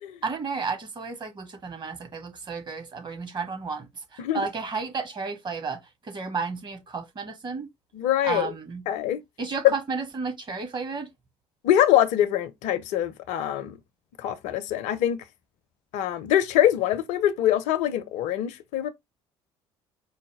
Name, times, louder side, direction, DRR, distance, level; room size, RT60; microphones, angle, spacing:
voice 1, 0.2-7.7 8.2-8.8 9.4-11.1, right 4 dB, 35° right, 1.3 m, -32 dB
voice 2, 7.9-8.5 8.9-9.2 9.6-9.7 11.6-13.8 14.2-15.2 15.9-18.9, left 12 dB, 60° left, 0.6 m, -23 dB
4.8 x 2.1 x 3.2 m
figure-of-eight pair, 50°, 14 cm